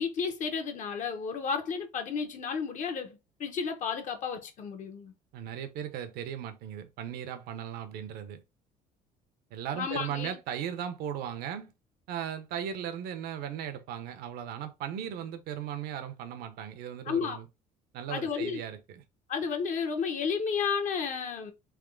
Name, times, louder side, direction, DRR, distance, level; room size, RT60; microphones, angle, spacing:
voice 1, 0.0-5.1 9.7-10.4 17.0-17.4 18.1-18.6 19.3-21.5, left 6 dB, 55° left, 1.0 m, -32 dB
voice 2, 5.3-8.4 9.5-11.7 12.1-17.5 17.9-19.0, right 9 dB, 75° right, 0.8 m, -37 dB
3.6 x 3.0 x 3.7 m
cardioid pair, 100°, 16 cm